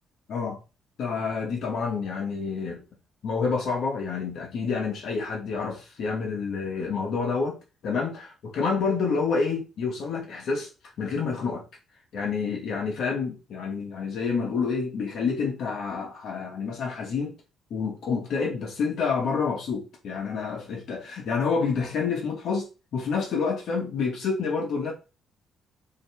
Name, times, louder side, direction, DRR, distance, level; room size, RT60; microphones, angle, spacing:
voice 1, 0.3-0.6 1.0-2.8 3.2-7.6 7.8-10.7 11.0-11.6 12.1-17.4 17.7-24.9, left 5 dB, 70° left, 1.3 m, -28 dB
5.3 x 2.9 x 3.4 m
cardioid pair, 90°, 0 cm